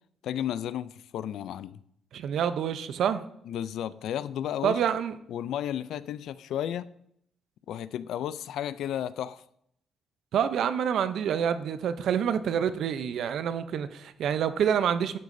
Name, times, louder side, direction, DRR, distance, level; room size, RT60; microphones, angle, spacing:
voice 1, 0.2-1.8 3.5-4.8 5.3-6.9 7.7-9.4, left 10 dB, 80° left, 16 dB, 0.3 m, -33 dB
voice 2, 2.1-3.2 4.6-5.2 10.3-15.2, right 8 dB, 70° right, 12 dB, 0.6 m, -27 dB
11.5 x 6.4 x 2.6 m, 0.72 s
cardioid pair, 90°, 0 cm